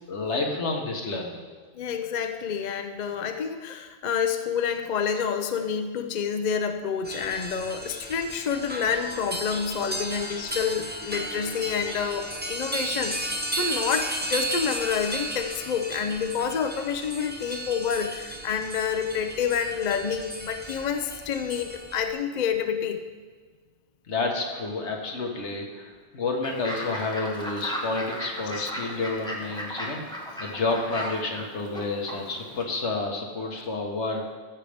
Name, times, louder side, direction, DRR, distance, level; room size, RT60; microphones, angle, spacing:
voice 1, 0.1-1.4 10.0-10.9 11.8-11.9 24.1-34.4, left 3 dB, 75° left, 1 dB, 1.6 m, -30 dB
voice 2, 1.7-23.0 28.5-28.7, left 7 dB, 50° left, 7 dB, 0.6 m, -28 dB
sound 1, 7.0-22.1, right 1 dB, 10° right, 0.5 m, -34 dB
Fowl / Bird, 26.4-32.6, equal, 5° left, 1.4 m, -36 dB
14.5 x 6.5 x 3.5 m, 1.5 s
omnidirectional pair, 1.2 m